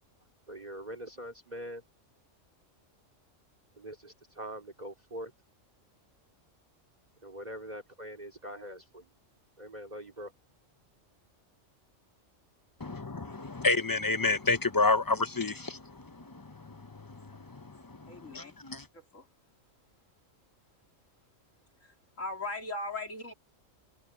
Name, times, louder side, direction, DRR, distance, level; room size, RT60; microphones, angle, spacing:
voice 1, 0.5-1.8 3.7-5.3 7.2-9.1 9.6-10.3, equal, 30° right, 2.7 m, -43 dB
voice 2, 12.8-18.9, left 3 dB, 25° left, 0.5 m, -30 dB
voice 3, 18.1-18.5 18.9-19.3 21.8-23.3, left 2 dB, 85° left, 4.0 m, -39 dB
omnidirectional pair, 1.3 m